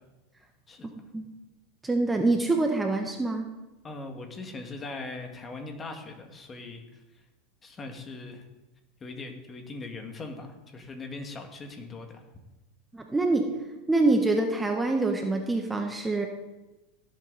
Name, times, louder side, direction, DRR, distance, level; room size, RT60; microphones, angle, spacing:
voice 1, 0.8-1.3 1.8-3.5 12.9-13.5 13.9-16.3, right 2 dB, 10° right, 3 dB, 1.3 m, -25 dB
voice 2, 3.8-6.8 7.6-8.4 9.0-12.2, left 3 dB, 25° left, 4 dB, 2.3 m, -40 dB
17.0 x 8.2 x 4.2 m, 1.1 s
hypercardioid pair, 105°, 0 cm